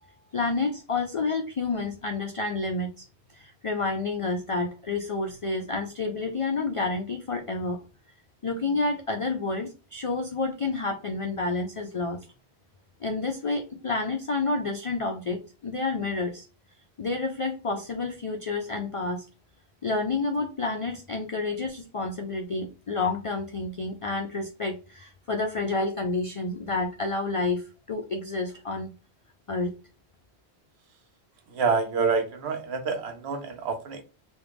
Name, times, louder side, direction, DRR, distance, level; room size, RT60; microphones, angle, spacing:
voice 1, 0.3-3.0 3.3-7.8 8.4-12.2 13.0-16.4 17.0-19.3 19.8-28.9 29.5-29.7, left 3 dB, 60° left, 4 dB, 0.3 m, -29 dB
voice 2, 31.5-34.0, right 5 dB, 75° right, 6 dB, 1.0 m, -27 dB
3.1 x 2.3 x 3.3 m, 0.33 s
omnidirectional pair, 1.1 m